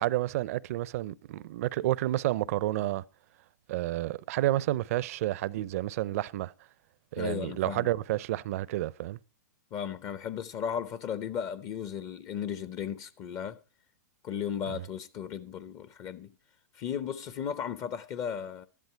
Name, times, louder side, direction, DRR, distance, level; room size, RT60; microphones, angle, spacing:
voice 1, 0.0-3.0 3.7-6.5 7.1-9.2 14.7-14.8, right 15 dB, 55° right, 0.6 m, -30 dB
voice 2, 7.2-7.9 9.7-13.6 14.2-16.3 16.7-18.7, left 8 dB, 35° left, 0.7 m, -35 dB
12.0 x 11.0 x 4.5 m
hypercardioid pair, 130°, 9 cm